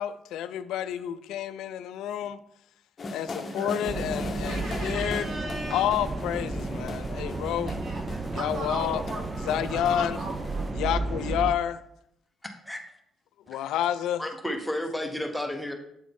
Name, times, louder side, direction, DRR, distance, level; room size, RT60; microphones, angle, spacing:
voice 1, 0.0-2.4 3.1-5.3 5.7-7.7 8.3-9.0 9.5-10.2 10.8-11.8 13.5-14.2, left 10 dB, 85° left, 0.3 m, -29 dB
sound 1, 3.0-10.7, left 2 dB, 40° left, 0.8 m, -39 dB
voice 2, 3.2-3.7 4.4-5.8 7.7-10.7, right 1 dB, 55° right, 2.0 m, -38 dB
sound 2, 3.9-11.5, right 3 dB, 30° right, 0.4 m, -33 dB
voice 3, 12.4-12.9 13.6-13.7 14.2-15.7, left 1 dB, 5° left, 0.9 m, -32 dB
8.0 x 3.7 x 3.5 m
cardioid pair, 90°, 0 cm